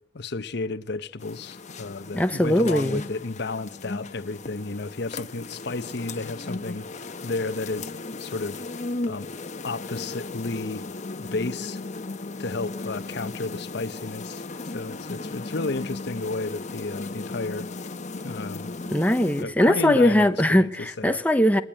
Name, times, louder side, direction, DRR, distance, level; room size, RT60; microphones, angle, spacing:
voice 1, 0.1-8.6 9.1-9.3 9.6-10.8 11.2-11.8 12.4-14.4 14.7-17.7 18.2-18.7 19.4-21.2, left 3 dB, 65° left, 0.9 m, -32 dB
sound 1, 1.2-19.4, left 3 dB, 40° left, 1.0 m, -36 dB
voice 2, 2.1-3.1 18.9-21.6, left 1 dB, 10° left, 0.9 m, -20 dB
27.0 x 20.0 x 9.0 m
head